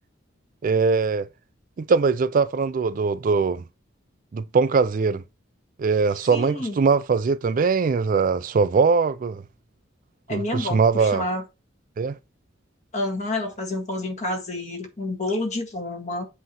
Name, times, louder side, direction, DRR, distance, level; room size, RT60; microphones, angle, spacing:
voice 1, 0.6-1.3 1.8-3.6 4.3-5.2 5.8-9.4 10.3-11.2 12.0-12.2, right 5 dB, 45° right, 0.4 m, -21 dB
voice 2, 6.3-6.8 10.3-11.4 12.9-16.3, left 1 dB, 35° left, 1.8 m, -29 dB
7.8 x 3.1 x 5.5 m
head